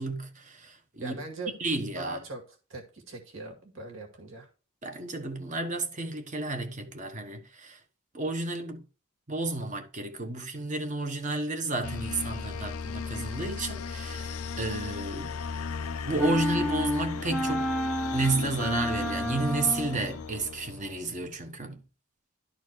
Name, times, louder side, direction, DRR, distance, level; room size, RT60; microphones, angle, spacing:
voice 1, 0.0-1.2 1.6-2.2 4.8-7.8 8.1-8.8 9.3-15.3 16.1-17.7 18.1-21.8, right 2 dB, 35° right, 1.1 m, -32 dB
voice 2, 1.0-1.6 1.9-4.5, right 2 dB, 65° right, 2.1 m, -40 dB
sound 1, 11.8-21.3, left 5 dB, 85° left, 0.6 m, -36 dB
sound 2, 16.2-20.1, left 1 dB, ahead, 0.6 m, -31 dB
12.0 x 4.2 x 4.6 m
head